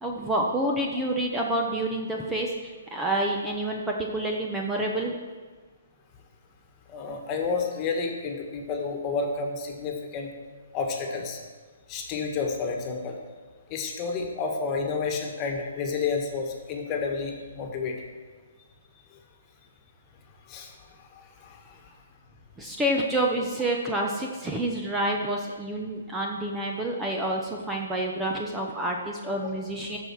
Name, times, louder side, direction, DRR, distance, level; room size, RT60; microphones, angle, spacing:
voice 1, 0.0-5.2 22.6-30.0, right 1 dB, 10° right, 0 dB, 0.9 m, -28 dB
voice 2, 6.9-10.3 10.7-11.4 11.9-13.2 13.7-18.0 20.5-20.7 21.1-21.8 29.4-29.5, left 4 dB, 30° left, 2 dB, 1.7 m, -30 dB
13.5 x 5.6 x 4.8 m, 1.4 s
figure-of-eight pair, 135°, 0 cm